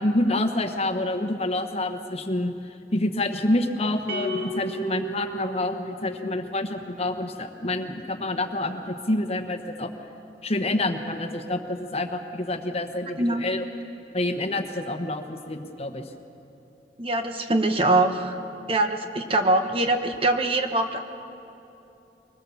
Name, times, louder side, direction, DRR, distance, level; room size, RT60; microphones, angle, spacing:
voice 1, 0.0-2.6 2.9-9.9 10.4-13.6 14.1-16.1, left 1 dB, 35° left, 6 dB, 1.2 m, -27 dB
sound 1, 4.1-6.6, right 1 dB, 55° right, 2.2 m, -33 dB
voice 2, 17.0-18.4 18.7-21.0, right 2 dB, 30° right, 6 dB, 1.1 m, -23 dB
23.5 x 20.5 x 7.1 m, 2.8 s
head